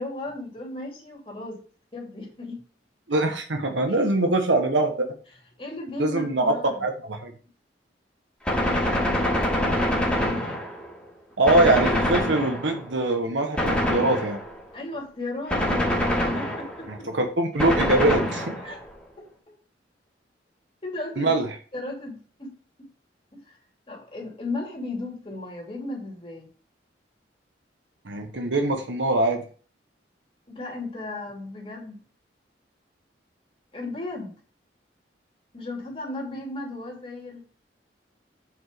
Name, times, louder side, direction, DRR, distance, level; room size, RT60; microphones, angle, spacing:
voice 1, 0.0-1.6 1.9-2.6 3.9-4.0 5.6-6.8 14.7-15.9 16.3-17.1 18.6-18.8 19.2-19.5 20.8-21.4 21.7-22.6 23.3-23.5 23.9-26.5 30.5-32.0 33.7-34.3 35.5-37.4, left 2 dB, 30° left, 2.7 m, -35 dB
voice 2, 3.1-4.9 6.0-6.5 6.8-7.3 11.4-14.4 16.9-18.6 21.2-21.5 28.0-29.4, right 2 dB, 85° right, 1.3 m, -23 dB
Gunshot gunfire, 8.5-11.0 11.5-12.9 13.6-14.6 15.5-16.9 17.6-18.8, left 1 dB, 5° left, 2.3 m, -25 dB
7.2 x 4.9 x 5.2 m
head